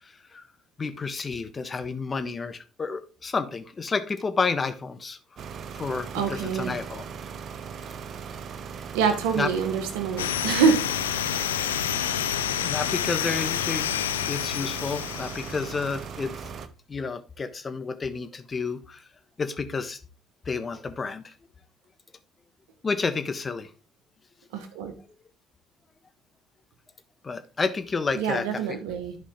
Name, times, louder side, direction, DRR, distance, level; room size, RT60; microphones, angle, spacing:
voice 1, 0.8-5.2 5.7-7.0 9.4-9.5 12.6-13.9 14.3-16.4 16.9-19.0 19.4-20.0 20.5-21.3 22.8-23.7 27.2-28.6, left 4 dB, 30° left, 10 dB, 1.2 m, -30 dB
sound 1, 5.4-16.7, right 6 dB, 55° right, 0.9 m, -39 dB
voice 2, 6.1-6.8 8.9-10.8 24.5-24.9 28.1-29.1, right 6 dB, 75° right, 7 dB, 1.5 m, -25 dB
sound 2, 10.2-15.8, left 11 dB, 85° left, 0.3 m, -28 dB
11.5 x 5.2 x 3.7 m, 0.33 s
hypercardioid pair, 55°, 0 cm